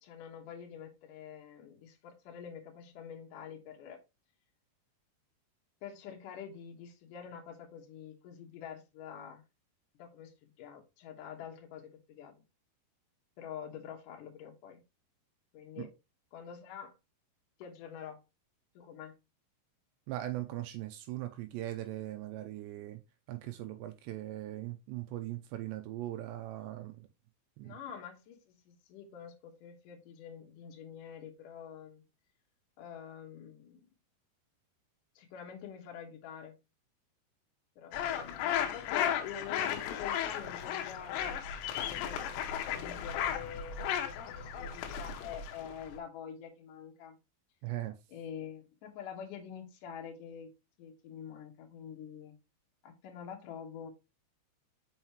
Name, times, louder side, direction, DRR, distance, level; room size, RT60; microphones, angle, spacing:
voice 1, 0.0-4.0 5.8-9.4 10.0-12.3 13.4-14.8 15.5-15.9 16.3-16.9 17.6-18.2 18.7-19.1 27.6-32.0 32.8-33.9 35.2-36.6 37.8-47.2 48.1-50.5 50.8-52.3 52.8-53.9, left 8 dB, 65° left, 2.2 m, -46 dB
voice 2, 20.1-23.0 23.3-27.1 27.6-27.8 47.6-48.0, right 15 dB, 80° right, 2.7 m, -40 dB
sound 1, 37.9-46.0, left 9 dB, 80° left, 3.0 m, -35 dB
6.4 x 5.6 x 3.0 m
omnidirectional pair, 5.2 m